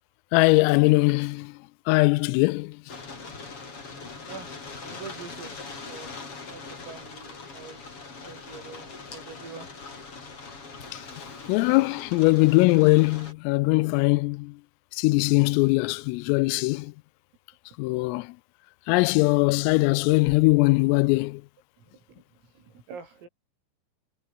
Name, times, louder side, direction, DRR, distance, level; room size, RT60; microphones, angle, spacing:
voice 1, 0.3-1.5 1.9-2.8 11.5-14.5 15.0-16.9 17.8-18.3 18.9-21.4, left 24 dB, 90° left, 3.3 m, -21 dB
sound 1, 2.9-13.3, left 4 dB, 30° left, 5.0 m, -42 dB
voice 2, 3.9-6.2 6.5-9.7 21.8-23.3, right 5 dB, 85° right, 9.9 m, -45 dB
omnidirectional pair, 5.9 m